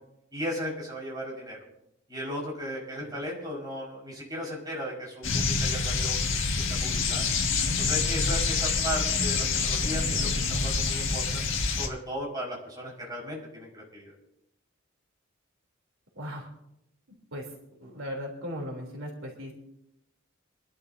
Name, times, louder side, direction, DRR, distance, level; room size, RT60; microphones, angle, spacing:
voice 1, 0.3-1.6 2.1-6.2 6.6-7.3 7.7-11.4 11.7-14.1, equal, 20° right, -4 dB, 5.3 m, -36 dB
sound 1, 5.2-11.9, left 4 dB, 65° left, 1.8 m, -27 dB
voice 2, 16.1-16.5 17.1-17.4 17.8-19.5, equal, 70° right, -1 dB, 3.4 m, -37 dB
27.0 x 12.0 x 2.8 m, 0.80 s
head